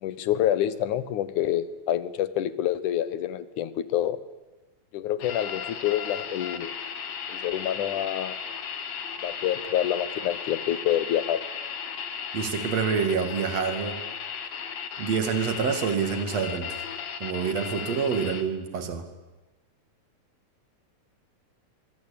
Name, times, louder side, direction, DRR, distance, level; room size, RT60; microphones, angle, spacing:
voice 1, 0.0-4.2 4.9-6.7 7.3-8.4 9.2-11.4, left 11 dB, 90° left, 14 dB, 2.7 m, -27 dB
sound 1, 5.2-18.4, left 7 dB, 65° left, 2.9 m, -36 dB
voice 2, 12.3-14.0 15.0-16.8 17.2-19.1, right 6 dB, 60° right, 7 dB, 3.5 m, -27 dB
24.0 x 24.0 x 8.8 m, 1.1 s
omnidirectional pair, 3.4 m